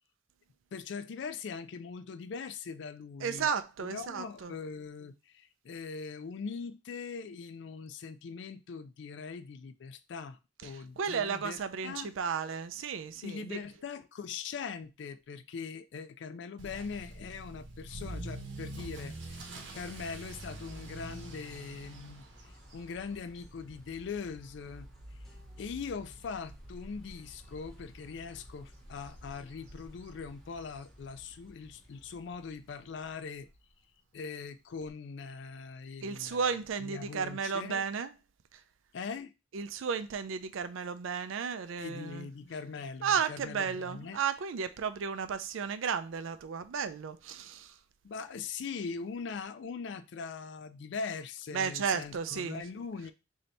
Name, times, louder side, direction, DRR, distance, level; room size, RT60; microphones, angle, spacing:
voice 1, 0.7-3.5 3.8-12.1 13.2-24.9 25.6-33.5 34.1-37.8 38.9-39.3 41.8-44.2 48.0-53.1, left 5 dB, 65° left, 0.4 m, -41 dB
voice 2, 3.2-4.5 11.0-13.6 36.0-38.1 39.5-42.3 43.0-47.7 51.5-52.6, right 6 dB, 90° right, 0.4 m, -33 dB
Motor vehicle (road) / Accelerating revving vroom, 16.6-31.4 31.7-32.1 32.6-32.7 33.0-33.1 33.4-33.5 34.8-34.9, right 2 dB, 70° right, 0.8 m, -47 dB
sound 1, 19.7-33.5, equal, ahead, 0.6 m, -55 dB
3.3 x 2.7 x 4.0 m
head